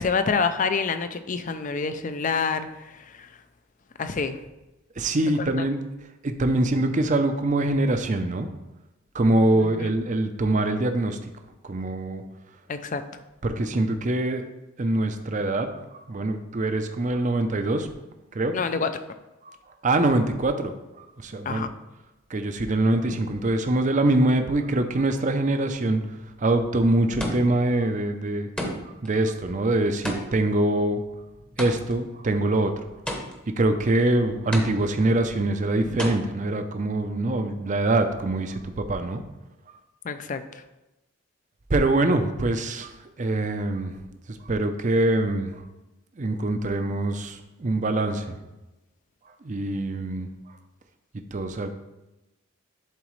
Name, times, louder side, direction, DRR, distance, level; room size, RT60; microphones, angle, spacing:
voice 1, 0.0-2.7 2.9-3.1 4.0-4.4 5.4-5.5 9.6-9.9 12.7-13.0 18.5-18.9 21.5-21.7 40.0-40.4, left 5 dB, 40° left, 10 dB, 0.4 m, -27 dB
voice 2, 5.0-5.8 6.2-8.5 9.1-11.3 11.6-12.2 13.4-14.5 14.8-15.7 16.1-17.9 18.3-18.6 19.4-19.6 19.8-21.6 22.3-26.0 26.4-28.5 29.0-31.0 31.6-32.8 33.6-39.2 41.7-43.9 44.3-45.6 46.2-48.4 49.4-50.3 51.3-51.7, right 2 dB, 35° right, 7 dB, 0.5 m, -24 dB
sound 1, 26.3-26.6 27.2-27.7 28.6-29.1 30.0-32.1 33.1-33.6 34.5-35.1 36.0-36.1, equal, 5° left, 0.8 m, -33 dB
11.0 x 4.0 x 3.2 m, 1.0 s
head